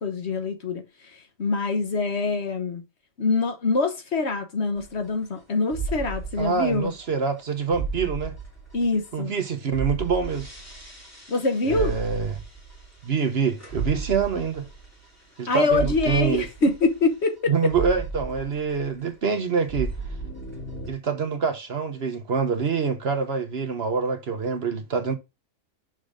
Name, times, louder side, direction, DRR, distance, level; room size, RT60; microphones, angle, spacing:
voice 1, 0.0-0.8 1.4-2.8 3.2-6.9 8.7-9.3 11.3-11.9 15.5-17.5, left 3 dB, 60° left, 1.4 m, -24 dB
sound 1, 4.8-5.4 5.7-9.4 9.7-19.1 19.4-20.9, right 4 dB, 10° left, 2.1 m, -35 dB
voice 2, 6.4-8.3 9.1-10.5 11.6-12.4 13.0-14.7 15.4-16.5 17.5-19.9 20.9-25.1, right 5 dB, 55° right, 1.2 m, -25 dB
6.4 x 3.8 x 5.0 m
omnidirectional pair, 1.3 m